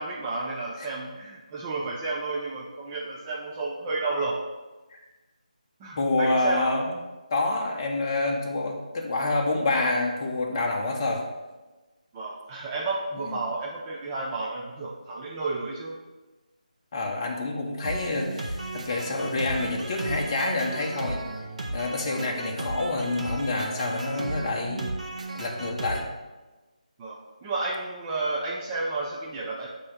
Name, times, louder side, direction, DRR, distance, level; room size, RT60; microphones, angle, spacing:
voice 1, 0.0-4.4 5.8-6.7 12.1-16.0 27.0-29.7, right 3 dB, 15° right, -4 dB, 0.5 m, -31 dB
voice 2, 6.0-7.0 7.3-11.2 13.3-13.4 16.9-21.2 21.7-24.9 25.3-26.1, left 2 dB, 30° left, 0 dB, 1.0 m, -27 dB
sound 1, 17.8-26.0, right 2 dB, 60° right, 1.0 m, -34 dB
8.3 x 2.9 x 4.9 m, 1.2 s
figure-of-eight pair, 160°, 4 cm